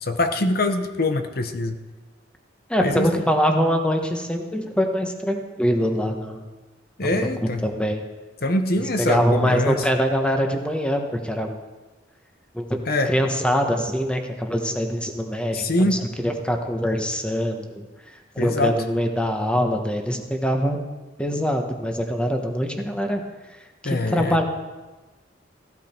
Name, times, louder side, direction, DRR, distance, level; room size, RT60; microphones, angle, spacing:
voice 1, 0.0-1.8 2.8-3.1 7.0-7.6 8.4-9.8 12.9-13.1 15.5-16.0 18.4-18.8 23.8-24.4, left 2 dB, 55° left, 7 dB, 0.9 m, -23 dB
voice 2, 2.7-6.4 7.0-7.3 7.6-8.0 8.8-11.6 12.5-12.6 13.0-17.9 18.3-20.8 21.2-23.2 23.5-23.6 23.8-24.4, equal, 5° left, 4 dB, 1.2 m, -23 dB
15.5 x 12.0 x 4.5 m, 1.2 s
head